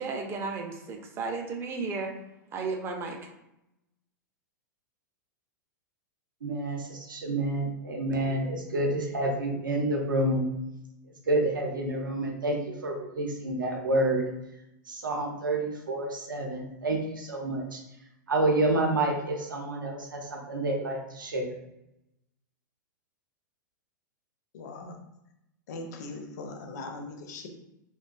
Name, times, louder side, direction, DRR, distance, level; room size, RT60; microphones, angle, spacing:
voice 1, 0.0-2.1 2.5-3.2, right 4 dB, 25° right, 3 dB, 0.4 m, -33 dB
voice 2, 6.4-10.5 11.3-14.2 14.9-17.8 18.3-21.6, right 2 dB, 80° right, 0 dB, 0.6 m, -29 dB
voice 3, 24.5-25.0 25.7-27.5, left 3 dB, 55° left, 3 dB, 0.5 m, -40 dB
2.4 x 2.2 x 2.3 m, 0.85 s
figure-of-eight pair, 100°, 11 cm